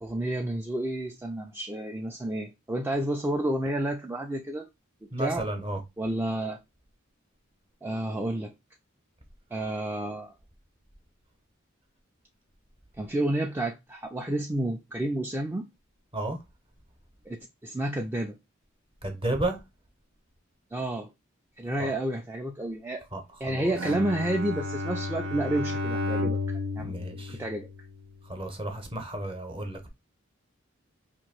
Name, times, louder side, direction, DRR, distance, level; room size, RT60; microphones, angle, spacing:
voice 1, 0.0-4.7 5.2-5.4 6.0-6.6 7.8-8.5 9.5-10.3 13.0-15.7 17.3-17.4 17.6-18.4 20.7-21.1 21.6-23.0 23.4-27.7, right 1 dB, 10° right, 0.4 m, -30 dB
voice 2, 5.1-5.8 16.1-16.4 19.0-19.6 21.8-21.9 23.1-23.7 26.8-27.4 28.2-29.9, right 2 dB, 25° right, 0.9 m, -32 dB
Bowed string instrument, 23.8-28.2, left 2 dB, 90° right, 0.9 m, -32 dB
2.9 x 2.6 x 4.3 m
head